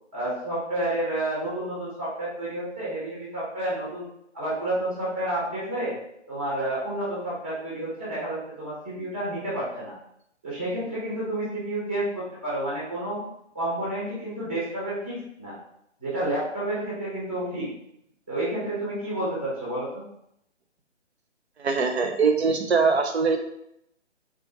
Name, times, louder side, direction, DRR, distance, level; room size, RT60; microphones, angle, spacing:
voice 1, 0.1-4.1 4.3-5.9 6.3-9.9 10.4-13.2 13.5-15.5 16.0-17.7 18.3-20.0, right 1 dB, 10° right, -8 dB, 0.5 m, -30 dB
voice 2, 21.6-23.4, right 5 dB, 60° right, 5 dB, 0.5 m, -22 dB
3.4 x 2.3 x 2.8 m, 0.76 s
figure-of-eight pair, 145°, 36 cm